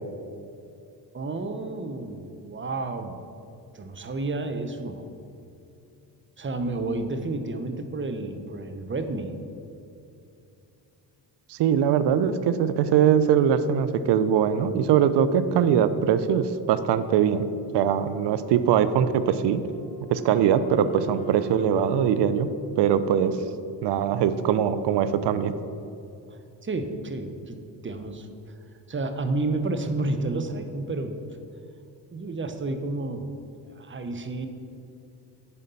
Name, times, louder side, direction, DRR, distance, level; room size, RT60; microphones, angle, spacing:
voice 1, 1.1-3.2 3.7-5.1 6.4-9.3 26.3-27.6 27.8-28.5 28.9-31.2 32.1-33.3 33.7-34.5, right 2 dB, 25° right, 7 dB, 0.8 m, -31 dB
voice 2, 11.5-17.5 17.7-19.6 20.1-22.5 22.8-23.4 23.8-25.5, right 8 dB, 70° right, 12 dB, 0.6 m, -22 dB
Wind instrument woodwind instrument, 19.1-23.6, right 8 dB, 15° left, 1.2 m, -43 dB
6.7 x 5.0 x 6.8 m, 2.6 s
cardioid pair, 75°, 43 cm